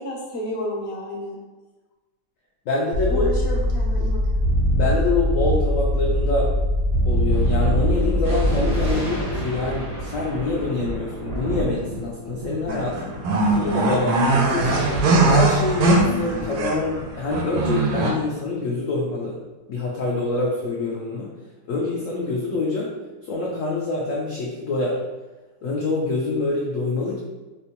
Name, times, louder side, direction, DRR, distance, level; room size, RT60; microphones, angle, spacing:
voice 1, 0.0-1.4 3.1-4.2 14.5-14.9, equal, 50° left, -3 dB, 0.8 m, -31 dB
voice 2, 2.7-3.3 4.7-6.5 7.1-13.2 13.5-14.8 15.2-19.4 19.7-21.3 21.7-22.9 23.3-25.0 25.6-27.2, left 3 dB, 85° left, -3 dB, 0.7 m, -25 dB
sound 1, 2.9-8.9, equal, 65° right, 0.9 m, -21 dB
Thunder, 7.3-18.2, right 1 dB, 50° right, 0.4 m, -31 dB
sound 2, 12.7-17.0 17.3-18.1, right 3 dB, 85° right, 1.3 m, -21 dB
4.4 x 2.1 x 2.8 m, 1.2 s
omnidirectional pair, 2.0 m